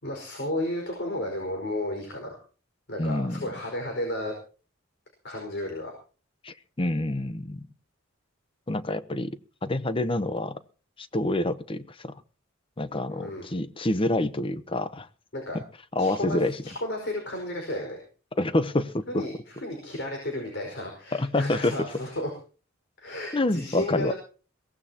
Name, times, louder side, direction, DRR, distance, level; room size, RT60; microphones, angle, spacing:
voice 1, 0.0-2.4 2.9-4.3 5.2-5.9 13.1-13.4 15.3-15.6 16.0-18.0 19.1-22.3 23.0-24.1, left 1 dB, 55° left, 1 dB, 5.1 m, -33 dB
voice 2, 3.0-3.4 6.4-7.7 8.7-10.6 11.0-12.1 12.8-15.1 15.9-16.6 18.4-19.2 21.1-21.7 23.3-24.1, left 2 dB, 25° left, 13 dB, 0.9 m, -27 dB
22.5 x 17.5 x 2.9 m, 0.38 s
head